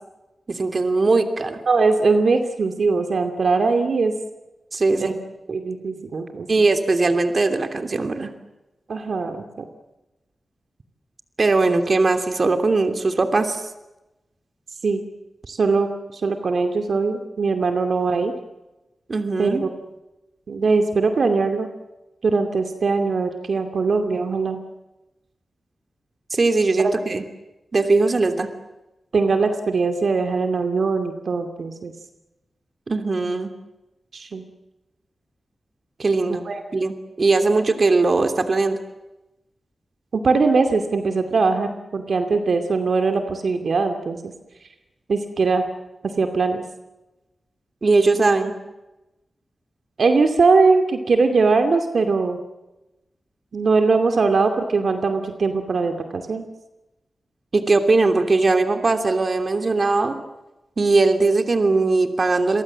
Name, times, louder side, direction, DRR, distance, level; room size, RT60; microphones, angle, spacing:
voice 1, 0.5-1.6 4.7-5.1 6.5-8.3 11.4-13.6 19.1-19.6 26.3-27.2 27.7-28.5 32.9-33.5 36.0-36.4 36.7-38.8 47.8-48.5 57.5-60.2 60.8-62.6, right 3 dB, 45° right, 7 dB, 3.0 m, -20 dB
voice 2, 1.7-4.1 5.0-5.2 5.5-6.5 8.9-9.7 14.8-15.0 15.5-18.3 19.4-19.7 20.5-21.7 22.2-24.6 26.8-26.9 29.1-31.9 34.1-34.4 36.3-36.6 40.1-44.2 45.1-45.6 46.0-46.6 50.0-52.4 53.5-56.5, right 4 dB, 70° right, 6 dB, 2.5 m, -21 dB
29.5 x 24.0 x 7.6 m, 1.0 s
wide cardioid pair, 90°, 0 cm